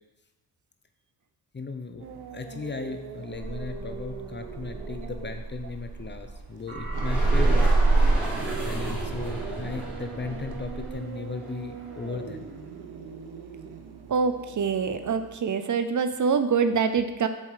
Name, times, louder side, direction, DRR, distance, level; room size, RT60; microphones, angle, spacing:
voice 1, 1.5-2.1 2.3-7.7 8.6-12.5, left 4 dB, 30° left, 7 dB, 0.7 m, -36 dB
sound 1, 2.0-15.4, right 6 dB, 85° right, 1.0 m, -41 dB
sound 2, 3.3-6.4 6.7-10.9, right 3 dB, 30° right, 2.7 m, -26 dB
sound 3, 6.9-12.5, equal, 5° right, 3.5 m, -37 dB
voice 2, 14.1-17.3, right 5 dB, 50° right, 9 dB, 0.6 m, -25 dB
7.7 x 7.2 x 4.8 m, 1.0 s
wide cardioid pair, 110°, 38 cm